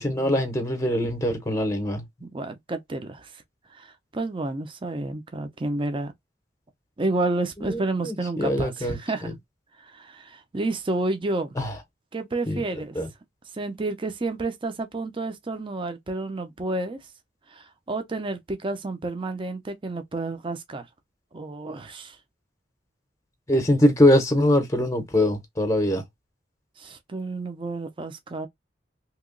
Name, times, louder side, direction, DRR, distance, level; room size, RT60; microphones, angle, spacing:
voice 1, 0.0-2.0 7.7-9.3 11.6-11.7 12.5-12.6 13.0-13.1 23.5-26.0, left 1 dB, 15° left, 0.8 m, -23 dB
voice 2, 2.2-3.4 3.7-6.1 7.0-9.3 9.8-11.5 12.1-13.0 13.5-17.0 17.5-20.9 21.3-22.2 26.8-28.5, right 2 dB, 30° right, 0.5 m, -30 dB
2.9 x 2.2 x 3.7 m
head